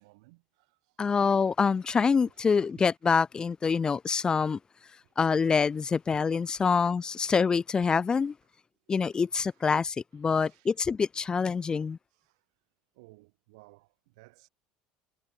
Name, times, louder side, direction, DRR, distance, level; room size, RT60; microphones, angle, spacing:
voice 1, 0.0-1.0 2.1-2.7 5.0-5.1 6.5-7.2 9.5-9.7 10.4-10.7 12.1-12.4 12.9-14.5, right 25 dB, 75° right, 1.9 m, -60 dB
voice 2, 1.0-4.6 5.2-8.3 8.9-12.0, left 5 dB, 25° left, 0.5 m, -26 dB
hypercardioid pair, 85°, 3 cm